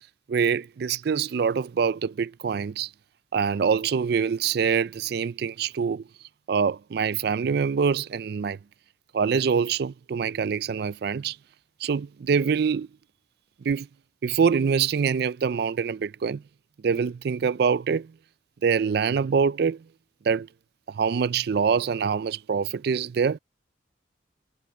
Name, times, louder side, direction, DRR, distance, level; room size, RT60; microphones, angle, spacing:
voice 1, 0.3-2.9 3.3-6.0 6.5-8.6 9.1-11.4 11.8-12.9 13.6-13.9 14.2-16.4 16.8-18.1 18.6-19.8 20.2-20.5 20.9-23.4, right 6 dB, 55° right, 0.3 m, -25 dB
head